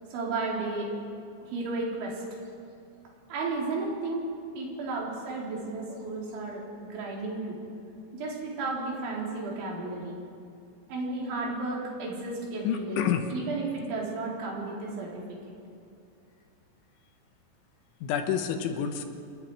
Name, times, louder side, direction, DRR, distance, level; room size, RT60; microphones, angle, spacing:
voice 1, 0.1-0.9 1.4-2.2 3.3-4.3 4.5-7.6 8.1-10.2 10.9-15.4, right 3 dB, 65° right, -3 dB, 6.1 m, -33 dB
voice 2, 12.6-13.2 18.0-19.0, left 9 dB, 75° left, 6 dB, 3.4 m, -28 dB
27.5 x 20.0 x 4.8 m, 2.5 s
omnidirectional pair, 5.9 m